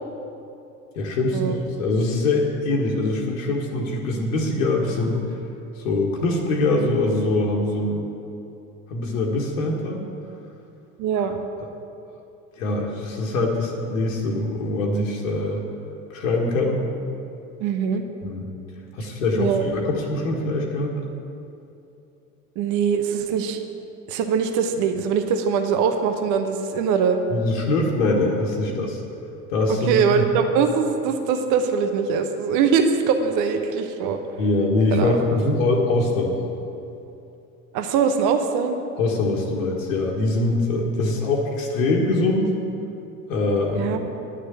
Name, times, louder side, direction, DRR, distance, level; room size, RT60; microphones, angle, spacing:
voice 1, 0.9-5.3 5.8-8.1 8.9-10.1 12.6-15.6 16.1-16.8 18.2-18.5 18.9-20.9 27.3-29.0 29.5-30.2 34.4-36.4 39.0-42.5 43.3-44.0, left 2 dB, 60° left, -1 dB, 1.6 m, -23 dB
voice 2, 11.0-11.4 17.6-18.0 19.4-19.7 22.6-23.6 24.1-27.2 29.7-34.2 34.9-35.2 37.7-38.8 43.8-44.0, right 6 dB, 45° right, 7 dB, 1.0 m, -22 dB
10.5 x 6.6 x 8.9 m, 2.8 s
figure-of-eight pair, 70°, 43 cm